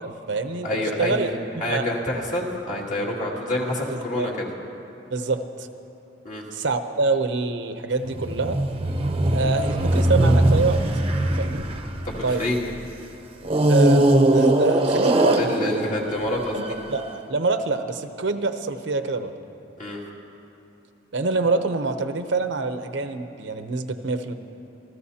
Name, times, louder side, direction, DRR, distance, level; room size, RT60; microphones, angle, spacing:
voice 1, 0.0-0.7 1.0-1.3 1.7-1.8 3.9-4.3 5.1-5.7 6.5-8.6 9.3-10.8 11.4-11.7 12.2-12.4 13.7-15.9 16.5-19.3 21.1-24.3, right 3 dB, 70° right, 8 dB, 0.8 m, -26 dB
voice 2, 0.6-1.3 1.6-4.5 6.2-6.4 12.0-12.6 15.4-16.8 19.8-20.0, left 1 dB, 45° left, -3 dB, 2.4 m, -27 dB
sound 1, 8.0-12.7 13.4-16.9, right 1 dB, 30° right, 0.8 m, -21 dB
27.5 x 14.0 x 2.8 m, 3.0 s
head